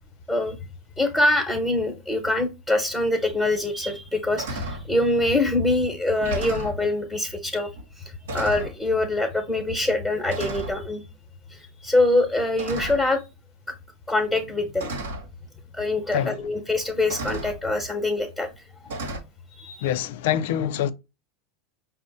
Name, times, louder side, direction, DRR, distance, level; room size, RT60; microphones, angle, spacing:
voice 1, 0.3-0.6 1.0-7.7 8.0-8.1 8.3-11.0 11.5-13.2 14.1-14.9 15.7-18.5 19.6-19.9, left 2 dB, 5° left, 1.1 m, -24 dB
sound 1, 3.3-3.4 3.9-4.1 4.4-4.9 5.7-5.8 6.1-6.8 7.8-7.9 8.3-8.8 9.7-9.9 10.3-10.8 12.6-13.2 14.3-14.4 14.8-15.3 16.4-16.5 17.1-17.6 18.9-19.2, right 1 dB, 75° right, 1.0 m, -33 dB
voice 2, 19.8-20.9, left 10 dB, 70° left, 0.4 m, -25 dB
5.2 x 2.1 x 4.0 m
hypercardioid pair, 90°, 0 cm